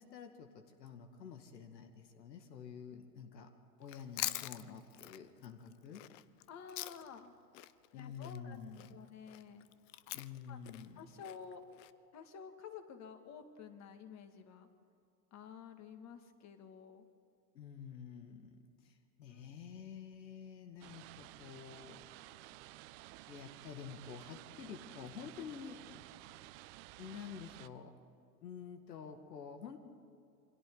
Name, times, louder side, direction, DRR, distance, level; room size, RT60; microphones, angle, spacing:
voice 1, 0.0-3.5 3.8-6.0 7.9-9.0 10.1-11.0 17.5-22.0 23.3-25.8 27.0-27.9 28.4-29.8, left 7 dB, 75° left, 6 dB, 1.9 m, -49 dB
Chewing mastication, 3.8-7.3 7.5-11.9, left 17 dB, 50° left, 0.7 m, -44 dB
voice 2, 6.5-7.3 7.9-8.6 8.9-9.7 10.5-10.6 11.0-11.6 12.1-14.7 15.3-17.0 19.3-19.5, left 6 dB, 30° left, 6 dB, 2.1 m, -51 dB
sound 1, 20.8-27.7, right 17 dB, 45° right, 0.7 m, -54 dB
28.0 x 23.0 x 4.0 m, 2.6 s
hypercardioid pair, 110°, 50 cm